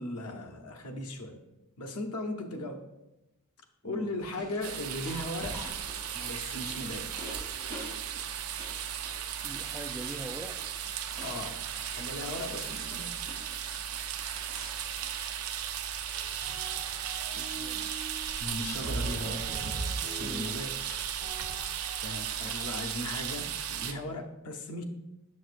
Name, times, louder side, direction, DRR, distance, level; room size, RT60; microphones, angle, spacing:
voice 1, 0.0-1.4 1.8-2.8 3.8-5.6 6.1-7.4 11.2-11.6 11.9-13.1 18.4-19.5 20.0-21.0 22.0-24.8, left 1 dB, 85° left, 4 dB, 0.8 m, -37 dB
voice 2, 3.8-4.2 9.4-10.8 17.4-17.9 20.2-20.5 22.4-22.5, right 1 dB, 10° right, 6 dB, 0.3 m, -43 dB
sound 1, 4.2-15.1, equal, 15° left, 2.0 m, -48 dB
sound 2, 4.6-23.9, right 9 dB, 75° right, 0.5 m, -36 dB
sound 3, 16.1-18.2 18.8-22.2, right 2 dB, 45° right, 0.8 m, -40 dB
6.7 x 6.3 x 2.5 m, 0.95 s
head